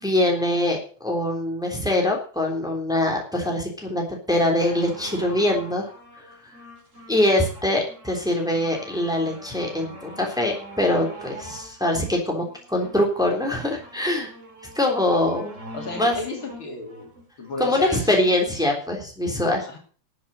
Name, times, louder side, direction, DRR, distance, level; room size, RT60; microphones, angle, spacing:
voice 1, 0.0-5.9 7.1-14.3 14.7-15.5 16.0-16.2 17.6-19.7, left 1 dB, ahead, 0 dB, 3.4 m, -23 dB
sound 1, 4.6-18.2 18.9-19.0, right 1 dB, 35° right, 3.7 m, -44 dB
voice 2, 15.7-17.1 17.4-18.3 19.7-19.8, left 2 dB, 65° left, 2 dB, 3.7 m, -33 dB
12.5 x 7.8 x 7.7 m, 0.42 s
omnidirectional pair, 2.4 m